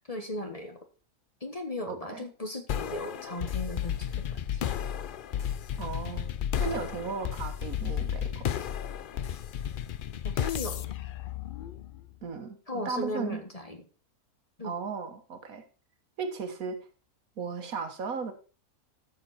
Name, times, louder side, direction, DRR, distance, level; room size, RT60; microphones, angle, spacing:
voice 1, 0.1-0.8 1.4-4.6 10.2-10.9 12.7-13.8 14.6-14.7, left 1 dB, 25° left, 1.3 m, -37 dB
voice 2, 1.9-2.3 5.8-6.3 6.6-8.5 12.2-13.4 14.6-15.6 16.2-16.8 17.4-18.3, right 5 dB, 70° right, 1.7 m, -36 dB
sound 1, 2.7-12.1, left 9 dB, 70° left, 0.5 m, -33 dB
13.0 x 6.7 x 4.2 m
omnidirectional pair, 1.5 m